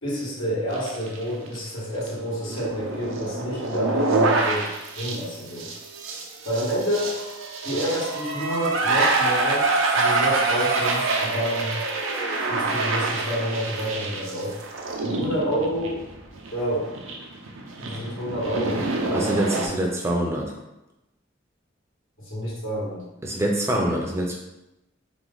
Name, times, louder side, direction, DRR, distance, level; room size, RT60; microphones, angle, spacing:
voice 1, 0.0-4.7 5.0-5.7 6.4-7.2 7.6-11.7 12.5-14.6 15.0-16.0 16.5-16.9 17.8-19.3 22.2-23.0, equal, 80° left, -5 dB, 1.5 m, -28 dB
sound 1, 0.7-1.2 1.5-1.6 2.1-19.7, right 3 dB, 85° right, 0.7 m, -26 dB
voice 2, 19.1-20.5 23.2-24.3, right 1 dB, 15° right, 0 dB, 0.5 m, -25 dB
3.9 x 3.0 x 3.9 m, 0.94 s
head